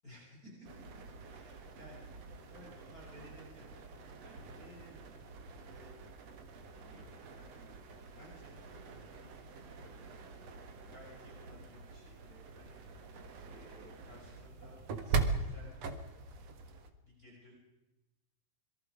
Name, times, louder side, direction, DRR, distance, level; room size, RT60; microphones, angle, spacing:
voice 1, 0.0-3.8 4.2-6.0 6.6-7.6 8.1-8.6 8.8-10.1 10.4-13.1 13.4-15.7 17.0-17.5, equal, 20° left, -3 dB, 6.3 m, -58 dB
sound 1, 0.6-16.9, right 4 dB, 60° right, 1.7 m, -42 dB
26.5 x 23.0 x 5.0 m, 1.0 s
omnidirectional pair, 5.2 m